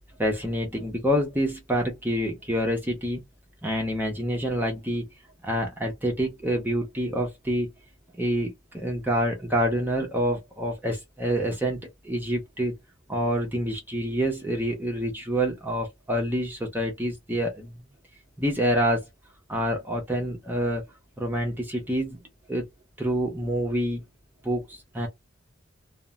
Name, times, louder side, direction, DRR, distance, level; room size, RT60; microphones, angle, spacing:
voice 1, 0.2-3.2 3.6-5.1 5.4-7.7 8.2-11.8 12.0-12.7 13.1-17.7 18.4-19.1 19.5-20.8 21.2-22.2 22.5-22.7 23.0-24.0 24.4-25.1, equal, 10° right, 0.6 m, -27 dB
2.4 x 2.0 x 3.1 m
head